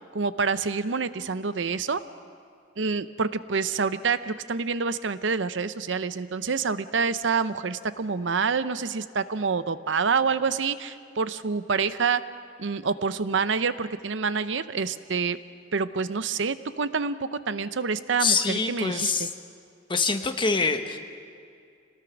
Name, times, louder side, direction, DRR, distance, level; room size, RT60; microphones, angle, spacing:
voice 1, 0.1-2.0 2.8-12.2 12.6-15.4 15.7-19.3, right 5 dB, 85° right, 13 dB, 0.7 m, -27 dB
voice 2, 18.2-19.3 19.9-21.0, left 4 dB, 25° left, 6 dB, 1.2 m, -25 dB
27.0 x 19.0 x 6.0 m, 2.3 s
head